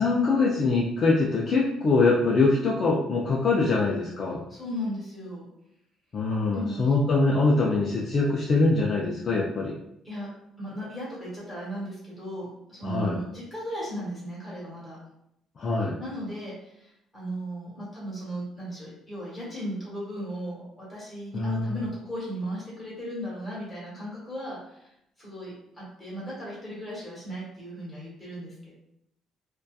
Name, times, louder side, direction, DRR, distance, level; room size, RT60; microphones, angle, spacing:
voice 1, 0.0-4.4 6.1-9.7 12.8-13.2 15.6-16.0 21.3-21.8, left 3 dB, 35° left, -4 dB, 0.3 m, -23 dB
voice 2, 4.5-5.5 6.5-6.9 7.2-7.3 10.0-10.3 10.6-15.0 16.0-24.9 25.2-28.7, equal, 10° left, -8 dB, 1.2 m, -36 dB
2.6 x 2.2 x 2.3 m, 0.77 s
cardioid pair, 145°, 0 cm